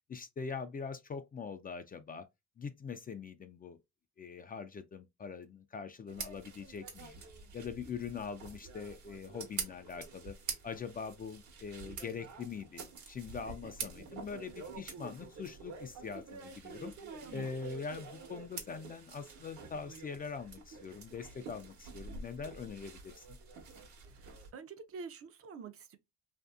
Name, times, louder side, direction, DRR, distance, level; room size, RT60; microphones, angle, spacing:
voice 1, 0.1-2.3 2.6-3.8 4.2-7.2 7.5-10.4 10.6-16.9 17.3-23.4, left 5 dB, 30° left, 0.3 m, -43 dB
sound 1, 6.1-24.5, right 5 dB, 70° right, 1.0 m, -47 dB
voice 2, 24.1-26.0, right 5 dB, 50° right, 0.5 m, -48 dB
2.6 x 2.6 x 2.3 m
cardioid pair, 90°, 30 cm